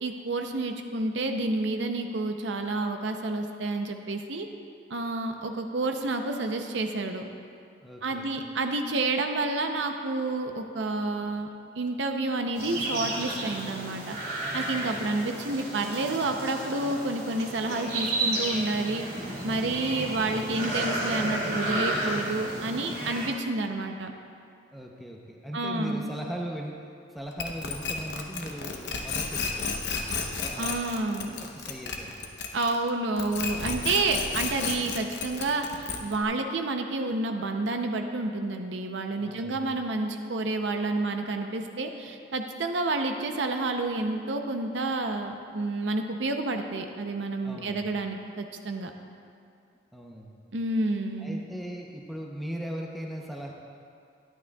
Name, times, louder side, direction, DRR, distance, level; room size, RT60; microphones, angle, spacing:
voice 1, 0.0-4.5 4.9-7.3 8.0-11.5 11.8-14.2 14.5-19.1 19.4-24.1 25.5-26.1 30.6-31.4 32.5-35.7 36.0-48.9 50.5-51.4, right 2 dB, 80° right, 5 dB, 0.6 m, -29 dB
voice 2, 7.8-8.3 14.7-15.2 20.0-20.3 24.7-26.8 27.1-29.7 30.4-30.8 31.2-32.3 34.3-34.4 39.2-39.6 47.4-47.9 49.9-50.4 51.2-53.5, equal, ahead, -1 dB, 0.6 m, -39 dB
sound 1, 12.6-23.3, right 1 dB, 55° right, 2.3 m, -32 dB
sound 2, 27.4-32.9 33.2-36.2, left 5 dB, 65° left, 0.8 m, -32 dB
12.0 x 11.0 x 2.3 m, 2.4 s
head